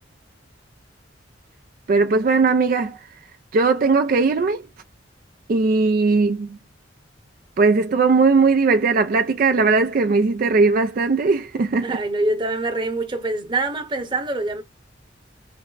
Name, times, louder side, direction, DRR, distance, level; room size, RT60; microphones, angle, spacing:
voice 1, 1.9-3.0 3.5-4.6 5.5-6.5 7.6-11.9, right 4 dB, 50° right, 0.3 m, -18 dB
voice 2, 11.8-14.6, right 2 dB, 25° right, 0.9 m, -25 dB
4.2 x 2.1 x 3.8 m
head